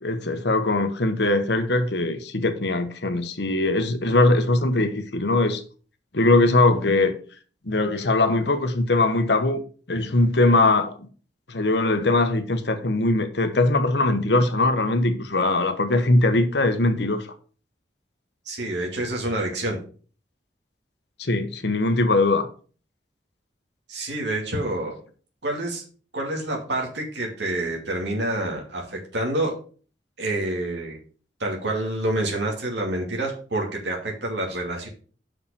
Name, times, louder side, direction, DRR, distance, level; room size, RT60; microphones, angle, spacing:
voice 1, 0.0-5.6 6.1-7.2 7.7-9.6 9.9-10.9 11.5-17.3 21.2-22.5, left 2 dB, 65° left, 1.1 m, -21 dB
voice 2, 18.5-19.8 23.9-25.0 25.4-25.8 26.1-29.5 30.2-31.0 31.4-34.9, right 1 dB, 75° right, 2.6 m, -27 dB
5.9 x 5.7 x 6.8 m
head